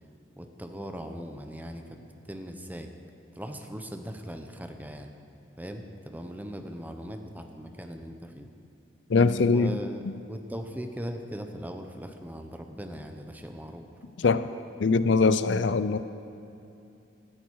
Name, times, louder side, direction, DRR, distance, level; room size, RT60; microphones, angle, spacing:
voice 1, 0.4-2.9 3.3-5.1 5.6-8.5 9.4-13.8, equal, 10° right, 5 dB, 0.9 m, -39 dB
voice 2, 9.1-9.7 14.2-14.5 14.8-16.0, left 4 dB, 80° left, 13 dB, 0.5 m, -22 dB
17.0 x 13.0 x 4.7 m, 2.7 s
head